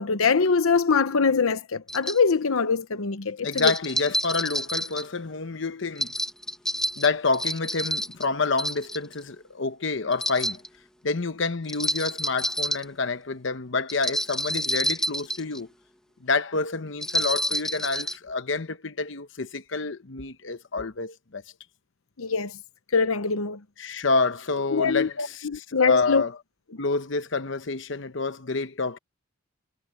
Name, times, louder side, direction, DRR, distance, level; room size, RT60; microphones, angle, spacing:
voice 1, 0.0-3.7 22.2-22.5 22.9-23.6 24.7-26.2, left 5 dB, 85° left, 0.9 m, -23 dB
sound 1, 1.9-2.2 3.5-5.0 6.0-8.2 8.6-9.2 10.1-10.7 11.7-12.8 13.9-15.6 17.0-18.2, equal, 5° left, 1.4 m, -28 dB
voice 2, 3.4-6.1 7.0-10.6 11.0-15.7 16.2-21.4 23.8-26.3 26.8-29.0, left 4 dB, 60° left, 0.9 m, -28 dB
head